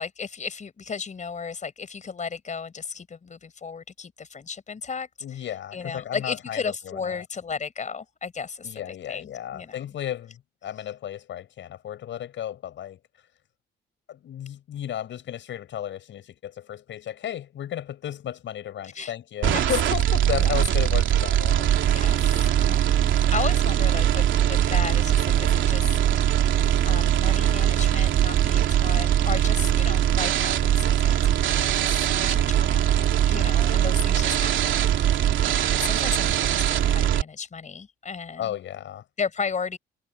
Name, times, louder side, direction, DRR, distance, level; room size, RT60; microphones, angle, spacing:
voice 1, 0.0-5.4 5.7-8.8 9.1-9.8 18.8-19.1 19.4-19.6 20.4-20.6 21.9-23.0 23.3-26.0 26.8-32.8 33.3-38.4 39.2-39.8, left 5 dB, 40° left, 4.8 m, -34 dB
voice 2, 5.2-7.2 8.6-13.0 14.1-21.8 31.5-32.0 38.4-39.0, left 11 dB, 70° left, 7.4 m, -34 dB
sound 1, 19.4-37.2, right 11 dB, 75° right, 2.9 m, -21 dB
cardioid pair, 90°, 20 cm